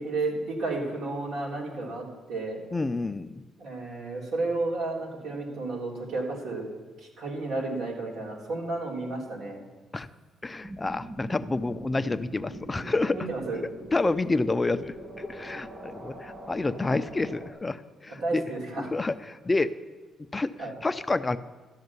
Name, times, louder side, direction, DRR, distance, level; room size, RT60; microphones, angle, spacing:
voice 1, 0.0-2.6 3.6-6.7 7.0-9.6 13.1-13.6 18.2-18.9 20.6-20.7, right 3 dB, 80° right, -2 dB, 3.4 m, -32 dB
voice 2, 2.7-3.4 9.9-10.1 10.4-13.2 13.9-18.4 18.9-19.7 20.3-20.5 20.8-21.4, left 3 dB, 20° left, 12 dB, 0.5 m, -28 dB
sound 1, 10.6-17.5, right 1 dB, 35° right, 2.3 m, -43 dB
13.5 x 6.6 x 9.5 m, 1.3 s
cardioid pair, 90°, 0 cm